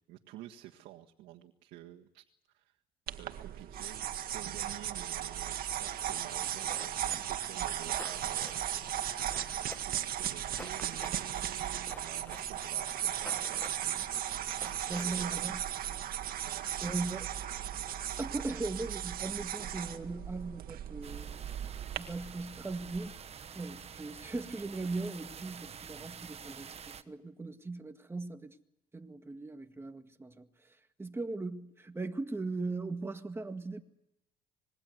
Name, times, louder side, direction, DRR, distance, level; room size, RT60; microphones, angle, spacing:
voice 1, 0.1-2.2 2.5-2.8 3.1-8.9 9.9-14.1 14.9-15.6 16.3-16.9, right 14 dB, 90° right, 1.7 m, -50 dB
sound 1, 3.1-22.0, right 10 dB, 60° right, 1.9 m, -36 dB
sound 2, 6.7-15.7, left 2 dB, 10° left, 1.1 m, -51 dB
voice 2, 14.9-15.6 16.8-17.3 18.2-21.6 22.0-23.1 23.5-28.6 28.9-33.8, right 3 dB, 15° right, 1.9 m, -39 dB
sound 3, 21.0-27.0, right 7 dB, 35° right, 1.2 m, -48 dB
26.0 x 21.0 x 8.0 m
cardioid pair, 110°, 17 cm